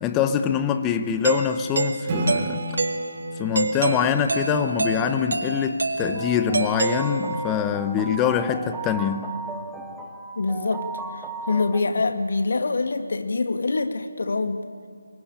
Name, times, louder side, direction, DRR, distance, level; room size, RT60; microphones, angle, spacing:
voice 1, 0.0-2.7 3.4-9.4, left 8 dB, 10° left, 10 dB, 0.9 m, -24 dB
Doorbell, 1.2-7.6, right 3 dB, 70° right, 2.0 m, -27 dB
Acoustic guitar / Strum, 2.1-5.6, right 2 dB, 25° right, 2.8 m, -33 dB
sound 1, 6.1-11.8, right 4 dB, 5° right, 1.3 m, -36 dB
voice 2, 10.4-10.9 11.1-14.6, left 3 dB, 60° left, 8 dB, 2.1 m, -25 dB
24.0 x 22.5 x 8.9 m, 2.1 s
figure-of-eight pair, 165°, 0 cm